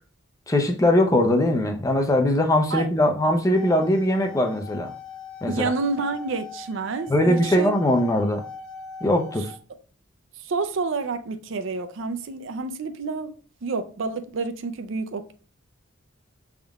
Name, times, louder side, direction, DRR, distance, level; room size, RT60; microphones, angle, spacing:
voice 1, 0.5-4.9 5.4-5.7 7.1-8.4 9.0-9.5, left 1 dB, 15° left, 0.5 m, -21 dB
sound 1, 3.3-9.5, left 4 dB, 85° left, 1.4 m, -40 dB
voice 2, 5.5-7.7 10.4-13.3 13.6-15.3, right 4 dB, 60° right, 0.5 m, -29 dB
6.3 x 3.6 x 2.3 m
head